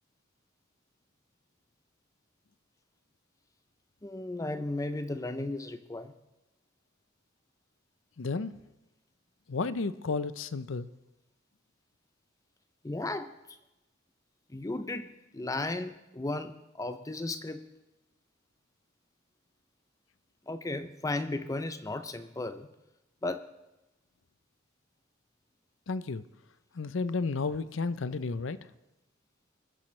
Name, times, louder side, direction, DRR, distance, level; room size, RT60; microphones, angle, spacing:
voice 1, 4.0-6.1 12.8-13.3 14.5-17.7 20.5-22.7 23.2-23.4, left 2 dB, 15° left, 10 dB, 0.5 m, -35 dB
voice 2, 8.2-8.5 9.5-10.9 25.9-26.2 26.7-28.6, left 4 dB, 65° left, 15 dB, 0.6 m, -32 dB
22.5 x 10.5 x 3.2 m, 0.97 s
head